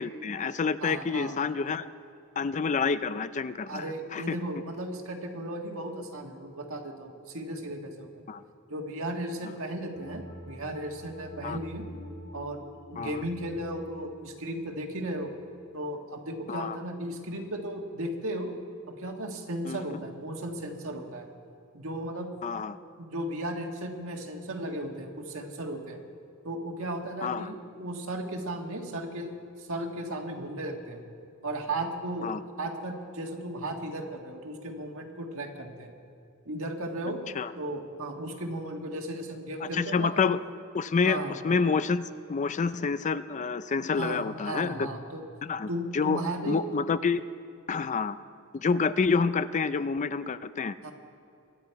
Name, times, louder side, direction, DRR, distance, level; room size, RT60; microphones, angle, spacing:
voice 1, 0.0-1.9 2.4-3.9 4.1-4.4 8.3-8.4 11.4-11.6 13.0-13.2 16.5-16.8 19.7-19.8 22.4-22.8 27.2-27.5 32.2-32.4 37.4-37.5 39.6-40.4 40.7-44.9 45.4-47.2 47.7-48.2 48.5-50.8, left 5 dB, 35° left, 13 dB, 0.4 m, -28 dB
voice 2, 0.8-1.4 3.7-8.1 8.7-11.8 12.3-12.6 12.9-15.3 15.7-18.5 18.9-21.3 21.7-22.3 23.0-26.0 26.4-29.3 29.6-31.0 31.4-35.9 36.4-37.2 37.6-40.2 41.0-41.4 44.0-45.2 45.7-46.6 50.8-50.9, right 1 dB, 65° right, 3 dB, 1.7 m, -35 dB
sound 1, 9.9-15.2, equal, 60° left, 3.0 m, -47 dB
24.0 x 9.8 x 4.7 m, 2.6 s
head